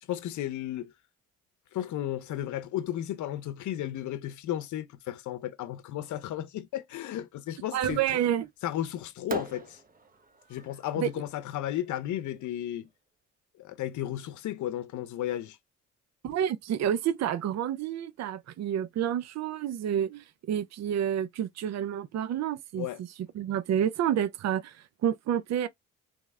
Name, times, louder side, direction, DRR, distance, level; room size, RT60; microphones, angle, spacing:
voice 1, 0.1-0.9 1.7-8.2 8.6-9.8 10.5-12.9 13.6-15.6 22.8-23.0, left 12 dB, 75° left, 0.7 m, -34 dB
voice 2, 7.7-8.5 11.0-11.1 16.2-23.1 23.3-25.7, right 10 dB, 60° right, 0.6 m, -29 dB
Fireworks, 7.8-8.5 9.3-12.4, right 3 dB, 30° right, 1.0 m, -42 dB
3.5 x 3.2 x 3.5 m
cardioid pair, 90°, 30 cm